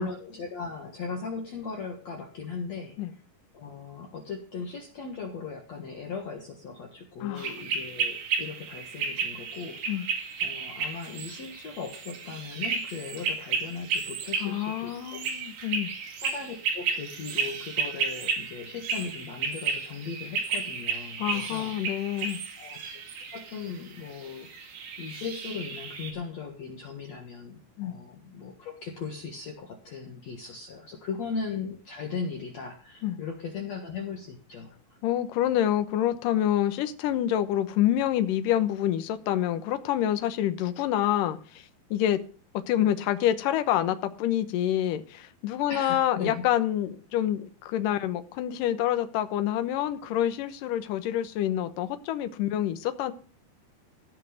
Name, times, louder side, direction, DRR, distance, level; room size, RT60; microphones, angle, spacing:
voice 1, 0.0-3.0 3.5-10.1 10.4-15.2 16.2-21.8 22.6-22.8 23.3-34.7 45.7-46.4, left 5 dB, 55° left, 2 dB, 2.5 m, -38 dB
sound 1, 7.4-26.1, right 5 dB, 70° right, 3.9 m, -33 dB
voice 2, 14.4-15.9 21.2-22.4 27.8-27.9 33.0-33.2 35.0-42.2 42.5-53.1, left 11 dB, 70° left, 10 dB, 2.5 m, -27 dB
16.5 x 5.8 x 7.0 m, 0.40 s
omnidirectional pair, 4.3 m